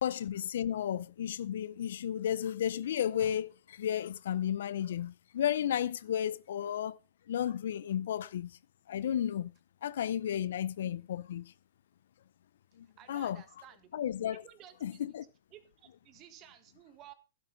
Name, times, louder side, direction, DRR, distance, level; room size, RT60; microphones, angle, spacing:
voice 1, 0.0-7.0 7.3-8.5 8.9-9.5 9.8-11.5 12.8-13.4 13.9-14.4 14.8-15.2, left 10 dB, 70° left, 0.6 m, -33 dB
voice 2, 13.0-13.9 14.3-15.0 15.5-17.1, right 11 dB, 25° right, 1.5 m, -55 dB
11.5 x 11.5 x 3.9 m
hypercardioid pair, 155°, 0 cm